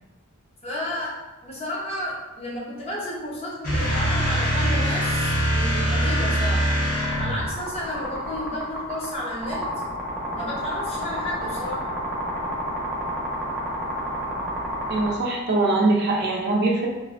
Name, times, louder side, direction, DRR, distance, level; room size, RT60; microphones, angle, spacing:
voice 1, 0.6-6.7 7.2-9.7 10.4-11.8, left 1 dB, 30° left, -5 dB, 0.7 m, -32 dB
sound 1, 3.6-7.6, equal, 45° left, 1.2 m, -23 dB
sound 2, 6.9-15.1, equal, 10° right, 0.7 m, -30 dB
voice 2, 14.9-16.9, right 2 dB, 50° right, -2 dB, 0.5 m, -22 dB
3.1 x 2.4 x 2.4 m, 1.1 s
head